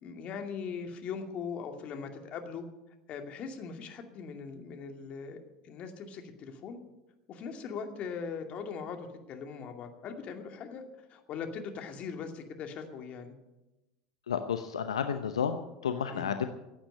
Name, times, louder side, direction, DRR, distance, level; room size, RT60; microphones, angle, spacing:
voice 1, 0.0-2.6 3.1-5.4 5.6-6.8 7.3-10.8 11.1-13.3 16.1-16.3, left 6 dB, 45° left, 4 dB, 2.4 m, -40 dB
voice 2, 14.3-16.5, left 7 dB, 80° left, 8 dB, 0.8 m, -31 dB
15.5 x 8.8 x 8.8 m, 1.0 s
hypercardioid pair, 75°, 3 cm